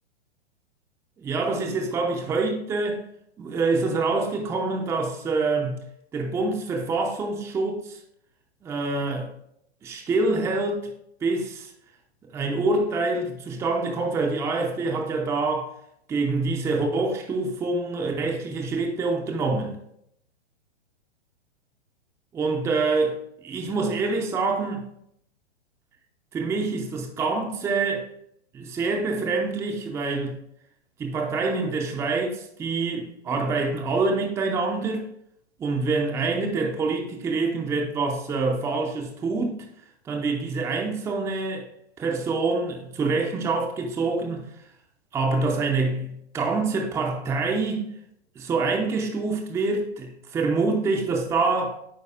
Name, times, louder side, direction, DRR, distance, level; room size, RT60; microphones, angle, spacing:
voice 1, 1.2-3.0 3.4-5.8 6.1-8.0 8.6-9.3 9.8-10.9 11.2-11.7 12.3-15.7 16.1-19.8 22.3-24.9 26.3-28.1 28.5-30.4 31.0-35.1 35.6-39.6 40.0-41.7 42.0-44.5 45.1-47.9 48.4-51.8, right 3 dB, 10° right, 0.5 m, -26 dB
8.5 x 4.7 x 2.4 m
figure-of-eight pair, 115°, 33 cm